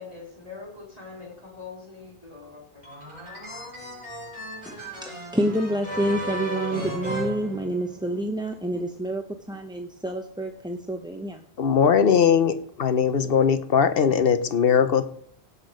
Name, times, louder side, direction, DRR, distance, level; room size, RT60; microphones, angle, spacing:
voice 1, 0.0-2.9, left 4 dB, 40° left, -3 dB, 2.8 m, -43 dB
sound 1, 2.8-8.2, right 1 dB, 30° right, 5.4 m, -35 dB
voice 2, 4.7-11.4, right 1 dB, 5° right, 4 dB, 0.7 m, -28 dB
voice 3, 11.6-15.0, left 7 dB, 65° left, 11 dB, 1.0 m, -20 dB
16.5 x 6.1 x 5.0 m, 0.66 s
omnidirectional pair, 1.1 m